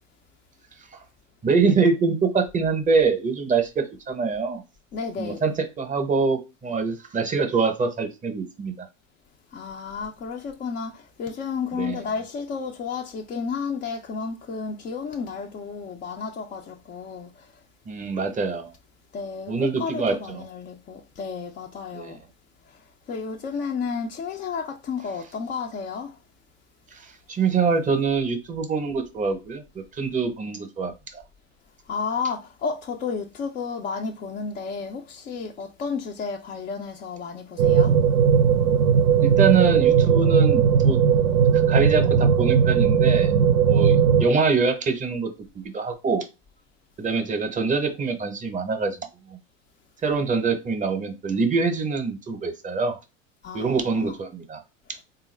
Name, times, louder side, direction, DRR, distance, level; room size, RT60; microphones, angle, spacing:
voice 1, 1.4-4.6 5.2-8.7 11.7-12.0 17.9-18.7 19.5-20.4 21.9-22.1 27.3-29.6 30.0-31.2 39.2-41.0 41.7-43.3 43.7-46.2 47.0-49.0 50.0-53.0 53.5-54.6, right 4 dB, 20° right, 0.7 m, -24 dB
voice 2, 4.9-5.4 9.5-17.5 19.1-22.2 22.7-22.8 23.1-26.2 31.9-38.0 53.4-54.1, left 5 dB, 25° left, 0.3 m, -32 dB
sound 1, 37.6-44.3, right 7 dB, 85° right, 0.6 m, -18 dB
3.6 x 2.3 x 3.2 m
hypercardioid pair, 95°, 39 cm